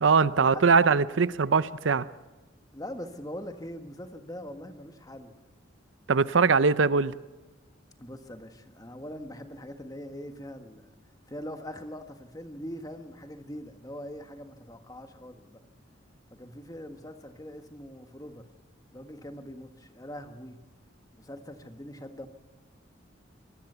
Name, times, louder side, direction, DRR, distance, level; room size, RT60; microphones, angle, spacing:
voice 1, 0.0-2.1 6.1-7.1, right 5 dB, 70° right, 0.6 m, -22 dB
voice 2, 2.7-5.3 8.0-10.9 11.3-15.6 16.3-18.5 18.9-20.6 21.2-22.3, equal, 20° left, 1.5 m, -42 dB
24.5 x 19.0 x 6.9 m
head